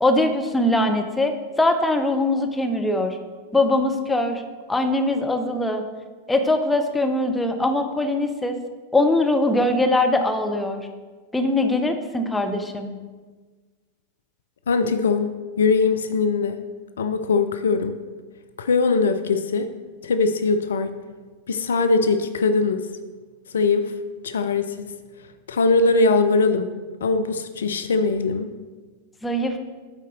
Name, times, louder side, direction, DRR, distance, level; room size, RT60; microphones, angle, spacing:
voice 1, 0.0-3.2 3.5-4.4 4.7-5.8 6.3-8.6 8.9-10.9 11.3-12.9 29.2-29.6, left 2 dB, 10° left, 5 dB, 0.6 m, -21 dB
voice 2, 14.7-16.6 17.0-18.0 18.6-19.7 20.0-21.0 21.5-22.9 23.5-23.9 24.2-24.9 25.5-26.7 27.0-28.5, left 4 dB, 65° left, 9 dB, 0.4 m, -21 dB
9.1 x 4.1 x 3.8 m, 1.4 s
figure-of-eight pair, 90°, 0 cm